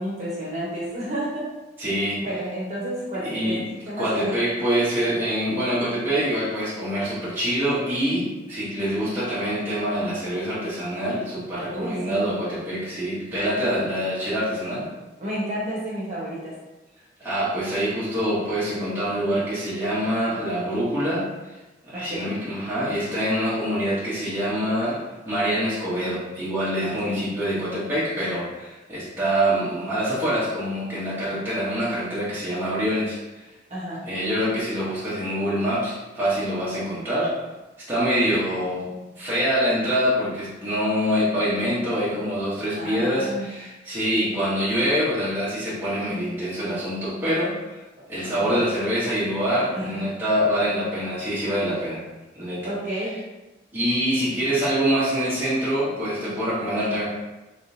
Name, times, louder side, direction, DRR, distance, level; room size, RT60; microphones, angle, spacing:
voice 1, 0.0-1.5 2.2-4.5 11.6-12.2 15.2-16.5 21.9-22.4 26.8-27.2 33.7-34.0 42.7-43.5 48.2-48.5 49.7-50.0 52.6-53.2, equal, 35° right, -7 dB, 1.1 m, -31 dB
voice 2, 1.8-2.2 3.2-3.6 4.0-14.9 17.2-21.2 21.8-25.0 25.3-33.2 34.1-37.3 37.8-38.9 39.2-47.8 48.1-52.0 52.3-52.7 53.7-57.1, equal, 10° right, -11 dB, 0.9 m, -25 dB
3.6 x 3.4 x 2.7 m, 1.1 s
head